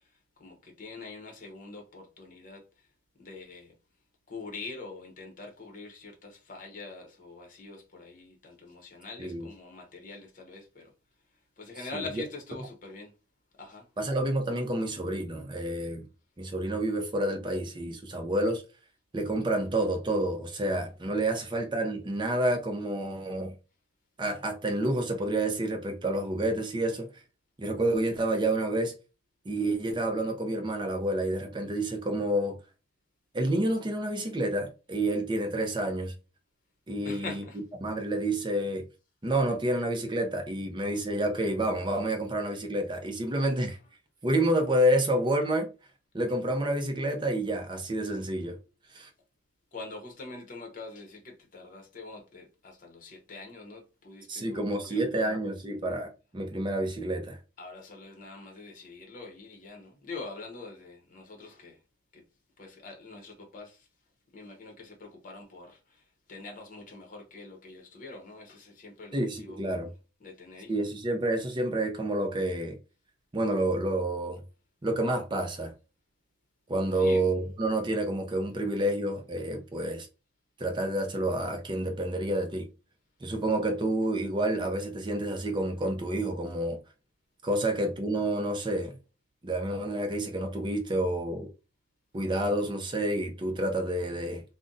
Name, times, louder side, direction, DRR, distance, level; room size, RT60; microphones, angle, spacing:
voice 1, 0.4-2.6 3.2-3.7 4.3-10.9 11.6-13.1 13.6-13.9 37.0-37.6 49.7-55.3 57.6-61.8 62.1-62.2 62.6-63.9 64.3-66.0 66.3-69.6 70.2-70.7 76.9-77.3, left 3 dB, 40° left, 0.8 m, -44 dB
voice 2, 14.0-16.1 16.4-18.6 19.1-23.5 24.2-27.1 27.6-28.9 29.5-32.6 33.3-36.1 36.9-37.4 37.8-38.8 39.2-43.8 44.2-45.7 46.1-48.6 48.9-49.1 54.3-57.4 69.1-69.9 70.7-72.8 73.3-74.4 74.8-75.7 76.7-80.1 80.6-82.7 83.2-86.8 87.4-88.9 89.4-91.5 92.1-94.4, right 1 dB, 25° right, 0.5 m, -29 dB
2.5 x 2.1 x 3.8 m
head